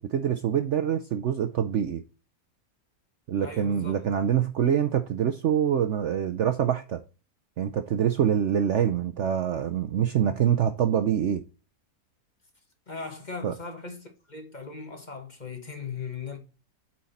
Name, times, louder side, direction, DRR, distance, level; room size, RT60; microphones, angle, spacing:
voice 1, 0.0-2.0 3.3-7.0 7.6-11.4 13.4-13.5, right 9 dB, 60° right, 0.8 m, -25 dB
voice 2, 3.4-4.1 12.9-16.4, left 5 dB, 30° left, 1.2 m, -38 dB
8.6 x 4.5 x 4.1 m
omnidirectional pair, 1.7 m